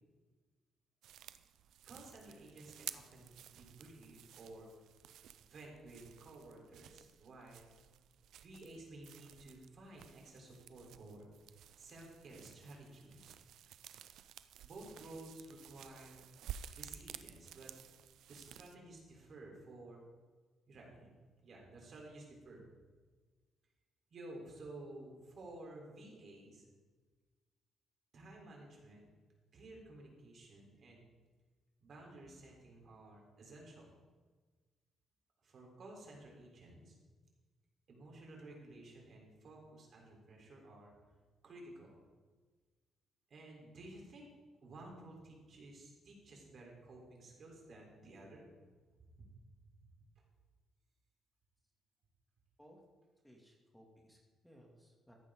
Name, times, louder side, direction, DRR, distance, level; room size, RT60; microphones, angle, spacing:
sound 1, 1.0-18.8, right 10 dB, 80° right, 0.5 m, -53 dB
voice 1, 1.8-4.7 5.4-7.7 8.4-11.3 11.8-13.3 14.6-16.2 16.7-17.7 18.3-20.0 20.7-21.1 21.4-22.7 24.1-26.6 28.1-29.0 29.5-31.0 31.8-33.9 35.4-37.0 37.9-40.9 41.4-42.0 43.3-44.3 44.6-48.5 49.2-49.3 49.8-49.9, right 2 dB, 55° right, 0 dB, 3.7 m, -53 dB
voice 2, 53.2-55.1, equal, 5° left, -1 dB, 2.4 m, -62 dB
14.5 x 10.5 x 3.8 m, 1.4 s
cardioid pair, 90°, 0 cm